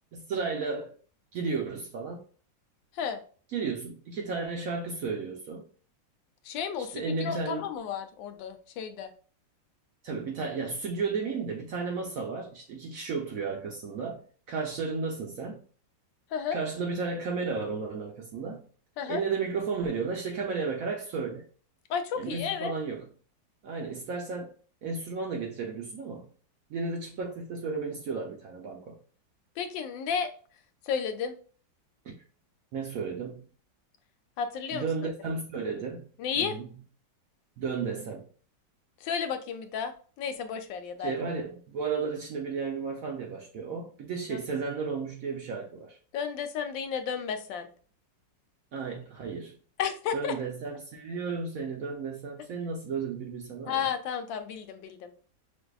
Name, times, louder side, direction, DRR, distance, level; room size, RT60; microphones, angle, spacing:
voice 1, 0.1-1.0 1.3-2.2 3.5-5.6 6.8-7.6 10.0-14.2 14.5-15.6 16.5-18.6 19.1-21.4 22.2-23.1 23.6-24.5 24.8-26.3 26.7-29.0 32.0-32.1 32.7-33.5 34.7-36.0 36.4-36.7 37.6-38.3 41.0-46.0 48.7-49.6 50.1-53.8, right 4 dB, 70° right, 0.8 m, -33 dB
voice 2, 6.4-9.1 16.3-16.6 19.0-19.2 21.9-22.7 29.6-30.3 30.9-31.4 34.4-34.9 36.2-36.6 39.0-41.1 44.3-44.4 46.1-47.7 49.8-50.4 53.7-55.1, left 7 dB, 85° left, 1.3 m, -32 dB
6.2 x 2.6 x 2.3 m
omnidirectional pair, 2.0 m